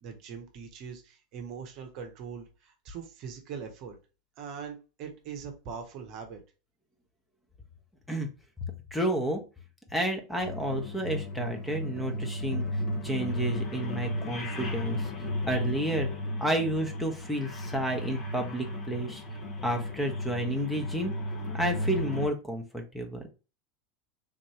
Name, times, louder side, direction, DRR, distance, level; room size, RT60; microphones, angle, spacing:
voice 1, 0.0-4.0 4.4-6.4, right 6 dB, 45° right, 4 dB, 0.8 m, -41 dB
voice 2, 8.9-9.4 9.9-15.1 15.5-16.1 16.4-19.2 19.6-21.1 21.5-23.3, right 1 dB, 5° left, 4 dB, 0.9 m, -31 dB
sound 1, 10.4-22.3, left 1 dB, 40° left, 0.9 m, -34 dB
3.6 x 2.6 x 3.1 m, 0.31 s
figure-of-eight pair, 80°, 0 cm